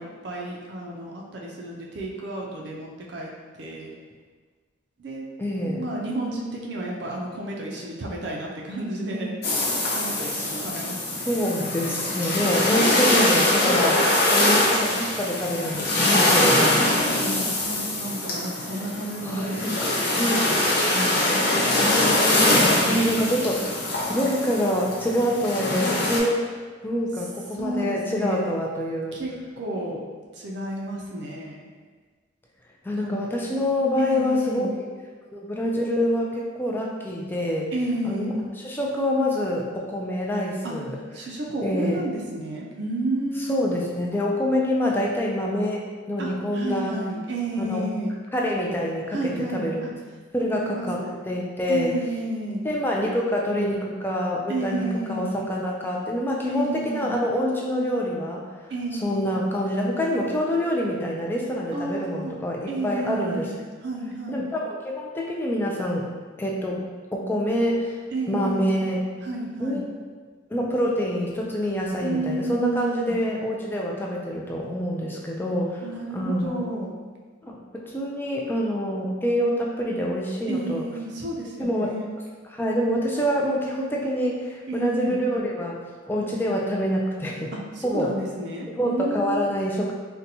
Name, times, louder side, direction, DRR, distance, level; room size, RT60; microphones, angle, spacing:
voice 1, 0.0-3.3 3.6-3.9 5.0-5.2 5.6-9.4 9.9-11.4 13.1-13.5 17.0-21.4 27.5-28.5 29.1-29.3 29.6-31.7 32.9-33.2 34.0-34.7 37.7-38.4 40.6-40.7 41.1-43.6 46.2-48.2 49.1-49.9 50.5-51.2 51.7-52.6 54.5-55.4 56.5-57.1 58.7-59.3 61.7-62.3 62.7-64.5 68.1-68.8 69.2-69.8 72.0-73.2 75.8-77.0 80.5-82.1 84.7-85.2 87.5-89.5, right 1 dB, 55° right, -2 dB, 0.4 m, -31 dB
voice 2, 5.4-5.9 10.4-10.6 11.3-14.0 14.3-16.8 19.2-20.5 21.8-26.5 26.8-29.2 32.8-34.7 35.3-37.7 38.0-38.3 38.6-41.0 41.6-42.0 43.4-47.0 47.6-47.9 48.3-49.9 50.3-52.0 52.6-58.4 59.0-63.5 64.3-66.1 66.4-66.8 67.1-68.0 68.3-69.0 69.6-69.8 70.5-75.8 76.1-76.6 77.4-80.9 81.6-81.9 82.5-85.8 86.1-87.5 87.8-88.1 88.7-89.9, equal, 10° left, -2 dB, 0.3 m, -26 dB
sound 1, 9.4-26.2, left 1 dB, 50° left, 0.6 m, -23 dB
4.0 x 2.2 x 2.7 m, 1.5 s
head